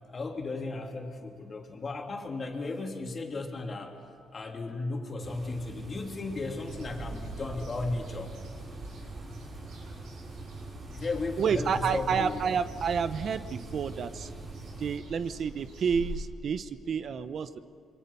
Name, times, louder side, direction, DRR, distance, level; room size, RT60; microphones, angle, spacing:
voice 1, 0.1-4.0 4.3-8.3 10.9-12.4, left 3 dB, 40° left, 2 dB, 3.1 m, -35 dB
sound 1, 5.2-15.0, right 3 dB, 35° right, 5.6 m, -44 dB
sound 2, 6.7-16.2, right 2 dB, 90° right, 5.3 m, -44 dB
voice 2, 11.4-14.3 14.8-17.6, right 6 dB, 55° right, 12 dB, 0.9 m, -30 dB
26.5 x 22.5 x 5.5 m, 2.4 s
cardioid pair, 90°, 0 cm